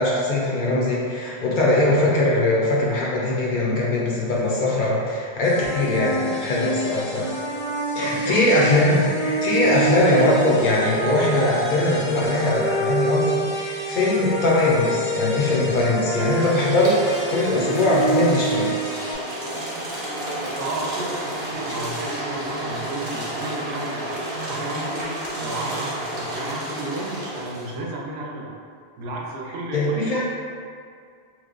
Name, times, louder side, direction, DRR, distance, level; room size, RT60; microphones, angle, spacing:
voice 1, 0.0-7.4 7.9-18.7 29.7-30.2, left 2 dB, 60° left, -5 dB, 0.6 m, -21 dB
sound 1, 5.4-19.1, right 2 dB, 80° left, 1.2 m, -27 dB
voice 2, 7.9-8.4 8.7-8.8 20.6-25.1 25.4-28.5 29.0-30.2, right 2 dB, 75° right, -2 dB, 0.8 m, -33 dB
sound 2, 16.2-27.7, right 1 dB, 25° right, 1.0 m, -31 dB
3.0 x 2.0 x 3.7 m, 2.2 s
omnidirectional pair, 1.1 m